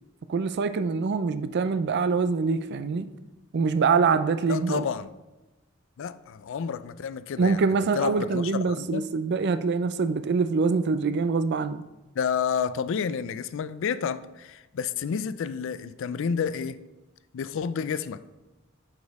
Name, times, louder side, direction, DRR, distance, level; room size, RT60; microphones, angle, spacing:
voice 1, 0.3-3.1 3.5-4.8 7.4-11.8, right 4 dB, 55° right, 0.4 m, -24 dB
voice 2, 4.5-5.1 6.0-7.6 7.9-9.0 12.2-16.8 17.3-18.2, left 6 dB, 65° left, 0.4 m, -30 dB
6.3 x 5.3 x 4.7 m
head